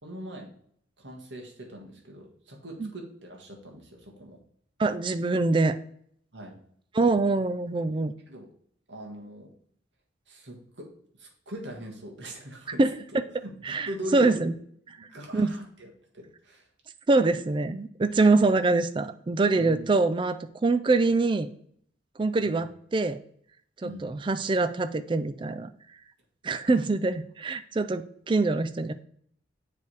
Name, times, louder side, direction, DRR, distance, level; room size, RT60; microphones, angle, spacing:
voice 1, 0.0-0.5 1.0-4.4 6.3-6.6 8.3-8.5 8.9-9.5 10.3-10.9 11.2-12.8 13.1-14.5 15.0-16.7 19.5-19.9 22.4-22.6 23.8-24.1, right 1 dB, 60° right, 0 dB, 1.5 m, -41 dB
voice 2, 4.8-5.8 6.9-8.1 12.8-12.9 13.6-14.5 15.3-15.5 17.1-21.5 22.2-23.2 23.8-25.7 26.4-28.9, right 3 dB, 25° right, 12 dB, 0.3 m, -24 dB
7.0 x 3.4 x 4.7 m, 0.66 s
head